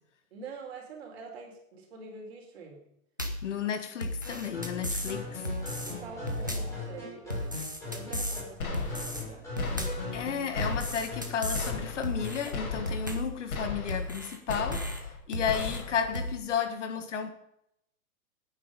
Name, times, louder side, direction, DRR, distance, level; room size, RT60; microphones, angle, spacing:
voice 1, 0.3-2.8 4.9-7.5 7.8-9.5, right 4 dB, 45° right, 2 dB, 4.3 m, -46 dB
sound 1, 3.2-3.5 4.0-5.1 5.4-5.9 6.3-6.8 7.3-8.4 8.7-9.2 9.6-10.1 10.6-11.7 12.0-12.5 12.9-13.4 13.9-15.0 15.3-15.8 16.1-16.3, equal, 15° right, 0.4 m, -34 dB
voice 2, 3.4-5.4 10.1-17.3, left 7 dB, 55° left, 8 dB, 1.8 m, -33 dB
sound 2, 4.2-13.0, left 3 dB, 5° left, 5.9 m, -41 dB
sound 3, 8.6-9.3 9.6-10.3 10.6-11.2 11.5-12.2 12.5-13.2 13.5-14.2 14.5-15.2 15.5-16.2, left 4 dB, 75° left, 4.7 m, -37 dB
16.5 x 9.4 x 5.3 m, 0.77 s
hypercardioid pair, 175°, 43 cm